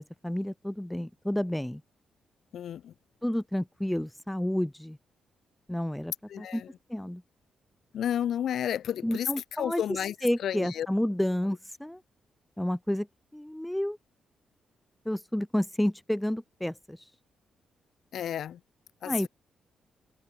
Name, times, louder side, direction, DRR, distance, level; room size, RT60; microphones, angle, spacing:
voice 1, 0.0-1.8 3.2-5.0 5.7-6.6 6.9-7.2 9.0-9.8 10.2-12.0 12.6-13.1 13.3-14.0 15.1-17.0 19.0-19.3, left 1 dB, 5° left, 0.5 m, -30 dB
voice 2, 2.5-2.9 6.3-6.7 7.9-9.3 9.6-10.1 10.4-10.9 18.1-18.6 19.0-19.3, left 10 dB, 70° left, 2.2 m, -31 dB
cardioid pair, 140°, 0 cm